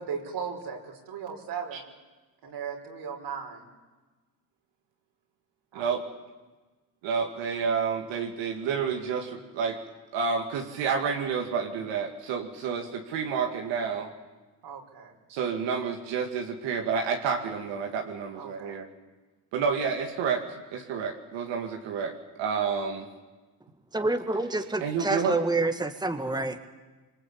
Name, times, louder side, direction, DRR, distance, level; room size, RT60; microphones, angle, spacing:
voice 1, 0.0-1.9 2.4-3.7 5.7-5.9 14.6-15.1 18.3-18.7, right 6 dB, 70° right, 2 dB, 5.6 m, -37 dB
voice 2, 7.0-9.8 10.1-14.1 15.3-18.9 19.5-23.1 24.8-25.4, right 6 dB, 90° right, 2 dB, 2.5 m, -29 dB
voice 3, 23.9-26.7, right 2 dB, 10° right, 6 dB, 1.9 m, -28 dB
26.5 x 24.0 x 8.8 m, 1.2 s
cardioid pair, 85°, 43 cm